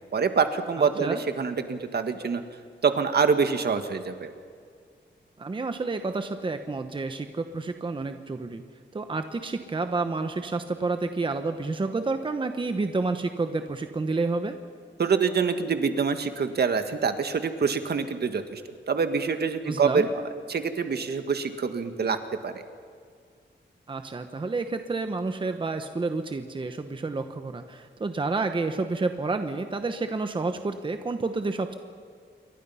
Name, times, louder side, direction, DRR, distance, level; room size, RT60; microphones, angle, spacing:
voice 1, 0.1-2.4 2.8-4.3 15.0-18.6 18.9-20.1 20.5-22.2 22.4-22.6, right 5 dB, 60° right, 8 dB, 1.7 m, -25 dB
voice 2, 0.8-1.2 5.4-8.6 8.9-14.6 19.6-20.1 23.9-31.8, right 3 dB, 25° right, 7 dB, 1.0 m, -29 dB
28.0 x 23.5 x 5.7 m, 2.1 s
wide cardioid pair, 180°, 19 cm